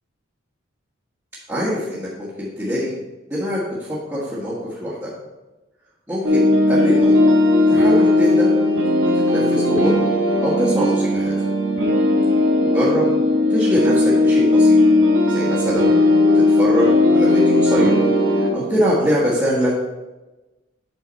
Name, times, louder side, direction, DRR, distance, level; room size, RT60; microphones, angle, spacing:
voice 1, 1.5-3.0 3.3-5.1 6.1-7.2 7.7-8.5 9.3-9.9 10.4-11.3 12.7-13.1 13.5-14.8 15.3-15.8 16.3-17.9 18.4-19.7, equal, 15° right, -9 dB, 1.6 m, -23 dB
sound 1, 6.2-18.5, left 2 dB, 85° right, 1.5 m, -16 dB
8.5 x 6.3 x 4.0 m, 1.1 s
head